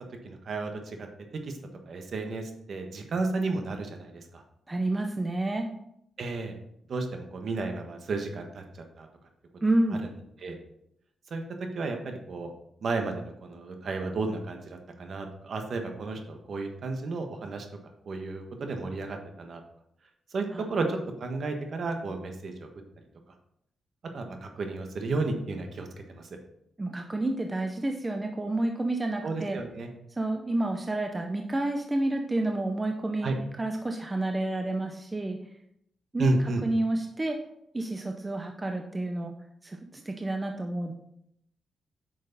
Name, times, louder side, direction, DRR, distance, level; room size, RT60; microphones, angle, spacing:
voice 1, 0.2-1.1 1.5-1.6 1.9-4.4 6.2-6.6 6.9-8.6 9.0-9.1 10.4-10.6 11.3-11.4 11.7-12.5 12.8-17.6 18.0-19.6 20.3-22.7 24.1-26.3 29.2-29.9 33.2-33.3 36.2-36.6, right 3 dB, 55° right, 4 dB, 1.5 m, -32 dB
voice 2, 4.7-5.7 9.6-10.0 20.5-20.6 26.8-29.6 30.2-33.3 33.6-35.4 36.1-36.3 36.6-37.4 37.7-39.3 39.6-40.9, right 2 dB, 20° right, 3 dB, 0.7 m, -29 dB
8.9 x 6.3 x 4.1 m, 0.74 s
cardioid pair, 125°, 0 cm